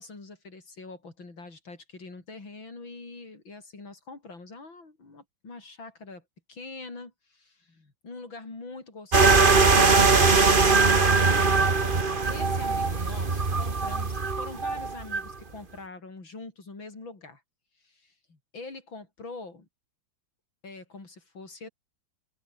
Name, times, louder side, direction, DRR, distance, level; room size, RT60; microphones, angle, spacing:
voice 1, 0.0-6.2 6.5-11.8 12.3-17.4 17.8-19.7 20.6-21.7, left 3 dB, 80° left, 6.0 m, -44 dB
sound 1, 9.1-15.3, right 4 dB, 30° right, 1.8 m, -21 dB
open air
omnidirectional pair, 2.1 m